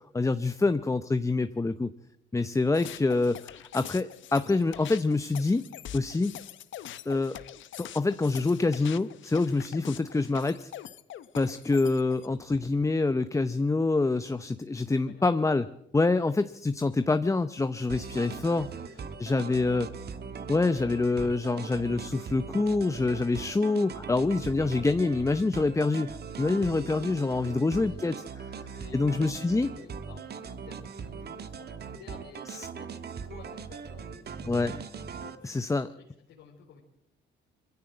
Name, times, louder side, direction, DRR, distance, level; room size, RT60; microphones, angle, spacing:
voice 1, 0.1-1.9 2.3-5.6 5.9-6.3 7.1-7.4 7.9-10.7 11.4-15.7 15.9-18.7 19.2-19.9 20.5-26.1 26.4-28.2 28.9-29.7 32.5-32.7 34.5-34.7 35.4-35.9, left 3 dB, 15° left, 11 dB, 0.7 m, -26 dB
sound 1, 2.7-12.3, left 11 dB, 75° left, 0.9 m, -44 dB
voice 2, 14.7-15.3 18.1-19.6 27.3-28.3 28.7-34.3 35.2-35.6 35.9-36.8, left 6 dB, 90° left, -2 dB, 4.0 m, -53 dB
sound 2, 17.9-35.4, right 6 dB, 55° right, 1.5 m, -40 dB
22.0 x 15.5 x 7.8 m, 0.81 s
cardioid pair, 90°, 20 cm